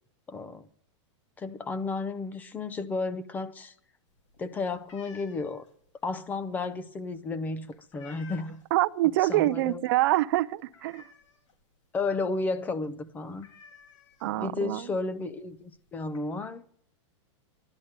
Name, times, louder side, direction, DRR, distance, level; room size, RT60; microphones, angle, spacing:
voice 1, 0.3-0.7 1.4-3.7 4.4-5.6 6.0-8.6 9.2-9.8 11.9-13.5 14.2-16.6, left 3 dB, 10° left, 0.6 m, -33 dB
sound 1, 4.1-8.8 9.2-9.5 9.8-9.9 10.3-11.6 12.0-12.1 12.4-12.6 12.9-13.0 13.4-14.6 15.4-15.5 15.8-16.2, left 6 dB, 80° left, 3.5 m, -54 dB
voice 2, 8.7-11.0 14.2-15.0, right 17 dB, 45° right, 0.6 m, -25 dB
12.0 x 11.5 x 8.9 m
supercardioid pair, 165°, 16 cm